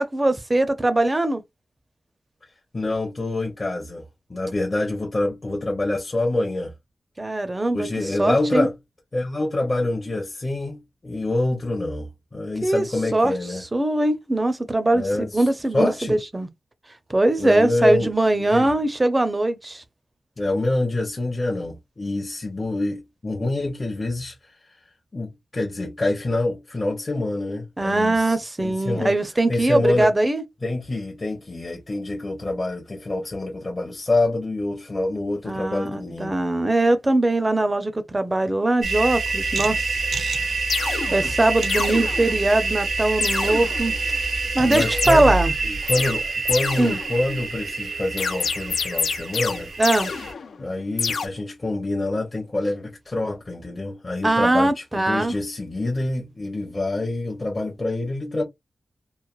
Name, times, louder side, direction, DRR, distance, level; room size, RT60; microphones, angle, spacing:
voice 1, 0.0-1.4 7.2-8.7 12.6-12.8 13.1-16.5 17.1-19.8 27.8-30.4 35.5-40.0 41.1-43.9 44.5-45.5 46.8-47.0 49.8-50.1 54.2-55.3, right 2 dB, 20° right, 0.4 m, -21 dB
voice 2, 2.7-4.0 4.3-6.7 7.7-8.8 9.1-13.6 14.9-15.5 15.7-16.2 17.4-18.1 18.4-18.7 20.4-24.5 25.1-29.1 29.5-30.1 30.6-36.3 44.7-45.4 45.6-49.7 50.6-58.4, left 2 dB, 30° left, 0.6 m, -26 dB
sound 1, 38.8-50.3, right 3 dB, 80° right, 0.6 m, -27 dB
sound 2, 40.0-40.1 40.7-41.4 41.7-42.6 43.2-44.0 44.7-45.3 45.9-46.2 46.5-47.3 48.2-50.7 51.0-51.3, left 5 dB, 80° left, 0.4 m, -27 dB
3.0 x 2.0 x 2.3 m
wide cardioid pair, 130°, 0 cm